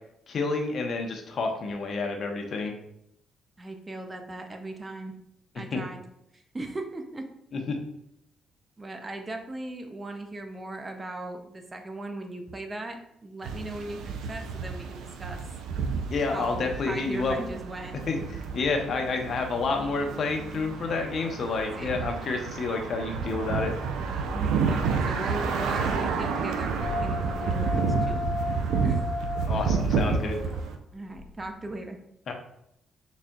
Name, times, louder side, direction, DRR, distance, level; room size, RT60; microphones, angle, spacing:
voice 1, 0.3-2.7 5.7-5.8 7.5-7.8 16.1-17.3 18.1-23.7 29.4-30.4 32.3-32.4, left 4 dB, 55° left, 3 dB, 0.7 m, -29 dB
voice 2, 3.6-5.1 5.5-6.0 6.5-7.3 8.8-15.4 16.3-18.0 21.8-22.0 24.3-28.3 28.8-29.1 30.9-32.0, right 2 dB, 25° right, 5 dB, 0.5 m, -38 dB
sound 1, 13.4-30.8, right 5 dB, 85° right, 0.4 m, -30 dB
sound 2, 26.8-31.8, left 3 dB, ahead, 1.4 m, -34 dB
4.1 x 3.5 x 2.3 m, 0.76 s
cardioid pair, 90°, 0 cm